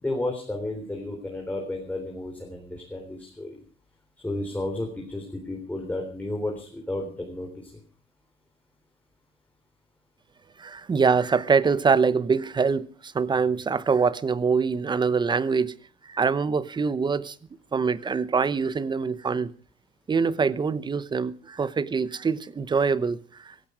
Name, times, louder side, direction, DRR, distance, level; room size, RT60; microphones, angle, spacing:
voice 1, 0.0-3.6 4.2-7.5, left 1 dB, 10° left, 3.8 m, -32 dB
voice 2, 10.6-15.8 16.0-17.4 17.7-19.5 20.1-23.5, right 5 dB, 25° right, 0.9 m, -24 dB
17.0 x 15.0 x 5.1 m
cardioid pair, 110°, 17 cm